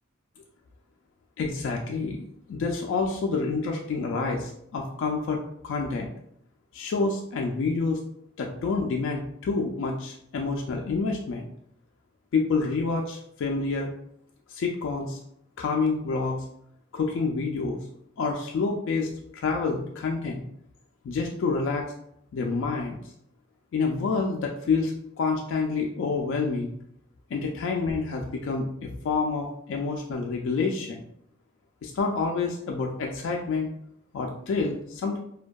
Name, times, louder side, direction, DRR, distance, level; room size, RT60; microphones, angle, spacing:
voice 1, 1.4-5.4 5.6-6.1 6.7-8.0 8.4-11.5 12.3-13.9 14.5-15.2 15.6-16.5 16.9-17.8 18.2-20.4 21.0-21.9 22.3-23.0 23.7-26.7 27.3-31.0 31.8-33.7 34.1-35.2, left 4 dB, 70° left, 0 dB, 0.3 m, -28 dB
2.6 x 2.2 x 2.2 m, 0.71 s
head